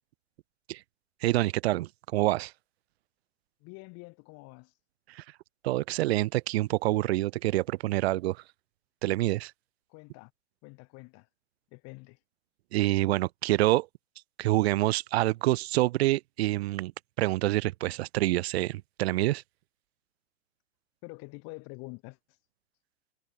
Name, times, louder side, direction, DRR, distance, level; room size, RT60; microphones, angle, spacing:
voice 1, 1.2-2.5 5.1-5.2 5.6-8.4 9.0-9.5 12.7-13.9 14.4-16.9 17.2-19.4, right 17 dB, 60° right, 0.9 m, -27 dB
voice 2, 3.6-4.7 9.9-10.3 10.6-11.3 11.7-12.2 21.0-22.2, left 28 dB, 45° left, 7.1 m, -46 dB
hypercardioid pair, 120°, 36 cm